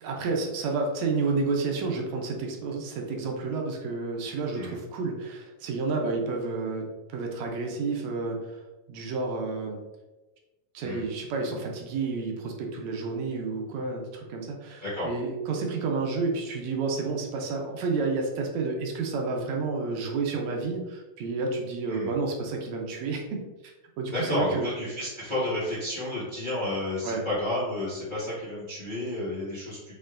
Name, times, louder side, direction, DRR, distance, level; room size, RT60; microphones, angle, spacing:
voice 1, 0.0-8.6 8.9-9.8 10.7-23.2 23.6-24.7 27.0-27.3, right 4 dB, 75° right, 1 dB, 1.8 m, -30 dB
voice 2, 24.1-29.9, left 1 dB, 85° left, -10 dB, 0.4 m, -31 dB
6.5 x 3.2 x 2.5 m, 1.1 s
omnidirectional pair, 3.5 m